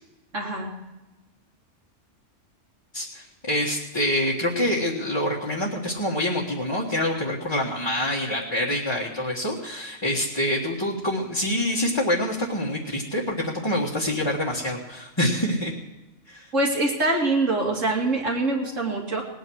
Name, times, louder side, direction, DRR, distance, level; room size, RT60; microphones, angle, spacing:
voice 1, 0.3-0.7 16.5-19.2, right 2 dB, 75° right, -1 dB, 2.9 m, -24 dB
voice 2, 2.9-15.7 16.3-16.5, left 1 dB, 20° left, -4 dB, 1.4 m, -26 dB
19.0 x 9.1 x 6.3 m, 1.0 s
omnidirectional pair, 1.3 m